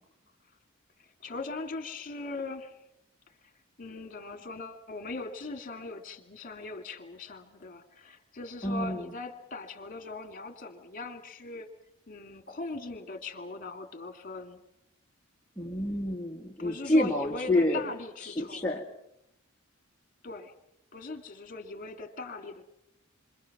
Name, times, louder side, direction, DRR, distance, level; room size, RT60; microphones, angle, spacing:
voice 1, 1.0-2.8 3.3-3.5 3.8-11.7 12.1-14.6 16.6-18.7 20.2-20.5 20.9-22.6, left 3 dB, 40° left, 6 dB, 2.4 m, -40 dB
voice 2, 8.6-9.1 15.6-17.9 18.2-18.8, left 1 dB, 5° left, -4 dB, 1.9 m, -28 dB
28.0 x 25.5 x 6.0 m, 0.83 s
head